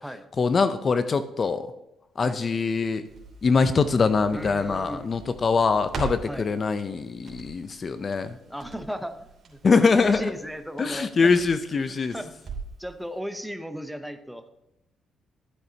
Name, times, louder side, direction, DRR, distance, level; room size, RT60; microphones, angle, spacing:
voice 1, 0.4-1.7 2.2-3.0 3.4-8.4 9.6-10.3 10.8-12.1, left 4 dB, 40° left, 11 dB, 0.5 m, -23 dB
Crackle, 3.1-12.9 13.2-13.3, right 4 dB, 55° right, 3.0 m, -42 dB
voice 2, 4.3-5.1 6.3-6.4 8.5-9.2 9.5-11.3 12.1-12.4 12.8-14.5, equal, ahead, 9 dB, 0.8 m, -35 dB
13.0 x 7.7 x 2.8 m, 0.89 s
cardioid pair, 90°, 0 cm